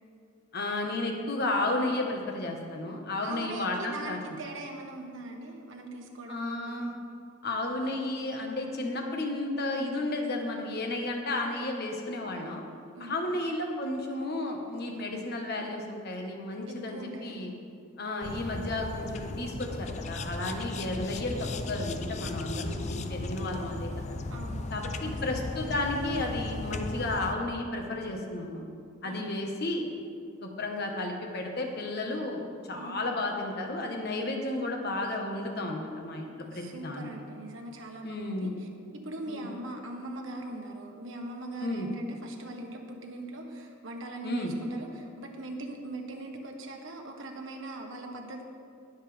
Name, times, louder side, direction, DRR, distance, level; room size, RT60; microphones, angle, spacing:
voice 1, 0.5-4.2 6.3-6.9 7.4-12.6 13.0-17.5 18.0-24.2 24.7-28.7 29.0-29.9 30.4-37.1 38.0-38.6 39.3-39.5 41.6-41.9 44.2-44.5, left 2 dB, 55° left, 2 dB, 1.4 m, -33 dB
voice 2, 3.2-6.8 12.9-13.2 16.7-17.4 24.3-25.5 29.0-29.5 32.8-33.0 36.2-38.7 38.9-48.4, right 2 dB, 75° right, 2 dB, 1.4 m, -41 dB
sound 1, 18.2-27.3, left 2 dB, 35° left, 0.5 m, -36 dB
20.0 x 7.2 x 3.5 m, 2.3 s
head